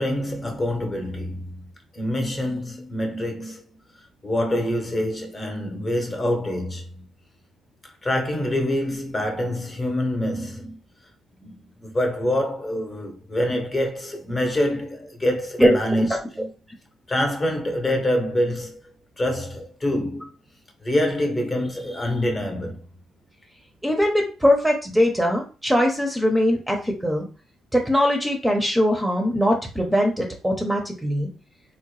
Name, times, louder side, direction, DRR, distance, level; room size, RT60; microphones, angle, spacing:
voice 1, 0.0-1.7 1.9-3.8 4.2-7.0 7.8-10.8 11.4-16.5 17.1-18.8 19.2-20.3 20.8-22.8, left 1 dB, 30° left, 0.9 m, -26 dB
voice 2, 23.8-27.3 27.7-31.3, equal, 5° right, 0.6 m, -21 dB
3.6 x 2.1 x 3.1 m
cardioid pair, 90°, 0 cm